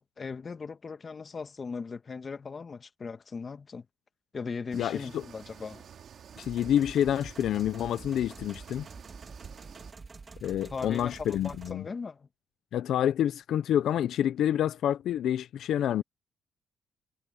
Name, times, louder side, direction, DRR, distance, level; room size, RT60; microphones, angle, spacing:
voice 1, 0.0-3.8 4.3-5.9 10.7-12.3, left 5 dB, 35° left, 1.6 m, -39 dB
voice 2, 4.7-5.2 6.4-8.9 10.4-11.8 12.7-16.0, left 10 dB, 75° left, 0.7 m, -28 dB
sound 1, 4.7-9.9, right 8 dB, 60° right, 2.4 m, -50 dB
sound 2, 6.3-11.7, right 4 dB, 30° right, 2.8 m, -47 dB
cardioid pair, 90°, 0 cm